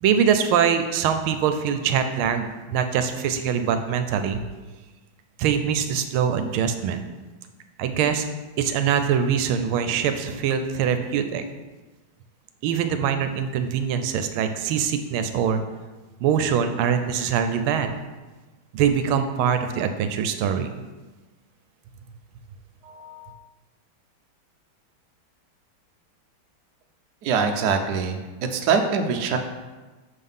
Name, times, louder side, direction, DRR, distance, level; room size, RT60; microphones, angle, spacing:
voice 1, 0.0-4.4 5.4-7.0 7.8-8.3 8.6-11.4 12.6-15.6 16.2-17.9 18.7-20.7, right 7 dB, 85° right, 8 dB, 1.4 m, -23 dB
voice 2, 22.8-23.3 27.2-29.4, right 5 dB, 70° right, 5 dB, 0.9 m, -24 dB
6.4 x 3.8 x 5.4 m, 1.2 s
omnidirectional pair, 2.3 m